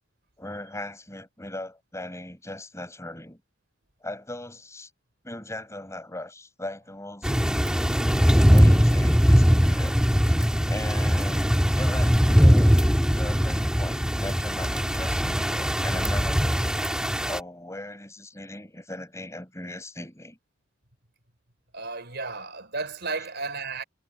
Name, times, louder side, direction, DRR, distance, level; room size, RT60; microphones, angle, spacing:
voice 1, 0.4-3.4 4.0-4.9 5.2-7.4 8.2-10.0 10.7-12.8 13.1-16.7 17.2-20.4, left 1 dB, 15° left, 6.3 m, -38 dB
sound 1, 7.2-17.4, equal, 5° right, 1.7 m, -21 dB
voice 2, 21.7-23.8, right 3 dB, 55° right, 4.5 m, -33 dB
head